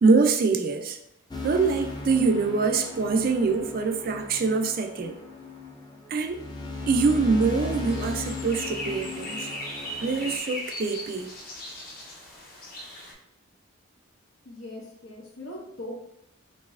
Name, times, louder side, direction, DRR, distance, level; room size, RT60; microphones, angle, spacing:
voice 1, 0.0-1.0 1.4-5.2 6.1-6.5 6.9-9.6 10.0-11.3, right 4 dB, 45° right, 0.3 m, -24 dB
sound 1, 1.3-10.4, left 3 dB, 20° left, 0.4 m, -36 dB
sound 2, 7.4-13.1, left 1 dB, 45° left, 0.9 m, -38 dB
voice 2, 14.4-15.9, left 1 dB, 80° left, 1.3 m, -40 dB
4.0 x 3.2 x 2.5 m
head